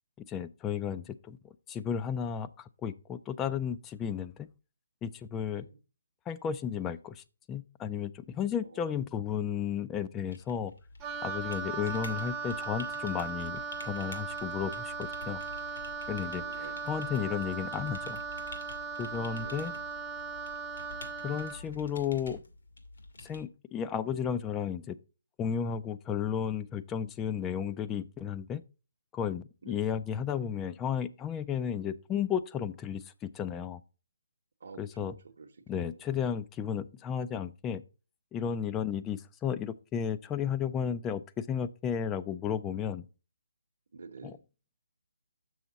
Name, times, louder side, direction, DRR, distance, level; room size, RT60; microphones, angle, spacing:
voice 1, 0.2-1.4 1.7-4.5 5.0-5.6 6.3-10.7 11.2-15.4 16.1-18.2 19.0-19.7 21.2-22.4 23.2-25.0 25.4-28.6 29.1-33.8 34.8-35.2 35.7-37.8 38.3-43.0 44.2-44.4, left 8 dB, 10° left, 0.3 m, -33 dB
sound 1, 10.3-23.4, left 2 dB, 70° left, 1.9 m, -49 dB
Wind instrument woodwind instrument, 11.0-21.7, right 5 dB, 15° right, 0.7 m, -38 dB
voice 2, 16.4-16.9 19.4-19.7 29.6-29.8 34.6-35.1 35.4-35.9 43.9-44.4, right 4 dB, 60° right, 0.9 m, -48 dB
6.8 x 6.3 x 4.0 m
hypercardioid pair, 165°, 0 cm